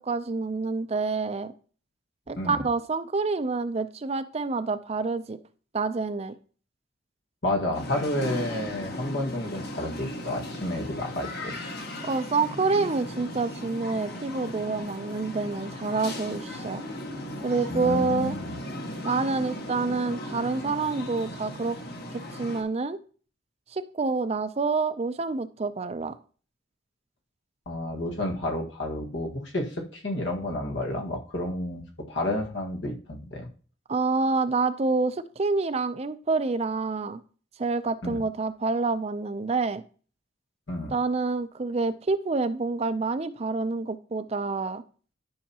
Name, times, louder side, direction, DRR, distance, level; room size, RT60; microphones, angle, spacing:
voice 1, 0.0-1.5 2.3-5.4 5.7-6.3 12.0-16.8 17.4-18.4 19.0-21.8 22.3-23.0 23.7-26.2 33.9-37.2 37.6-39.8 40.9-44.8, right 3 dB, 35° right, 12 dB, 0.5 m, -27 dB
voice 2, 2.4-2.7 7.4-11.5 17.7-18.6 27.6-33.5 38.0-38.2 40.7-40.9, left 1 dB, 80° left, 2 dB, 1.7 m, -31 dB
sound 1, 7.7-22.6, left 1 dB, 55° left, 1.5 m, -37 dB
12.0 x 5.7 x 2.9 m, 0.39 s
head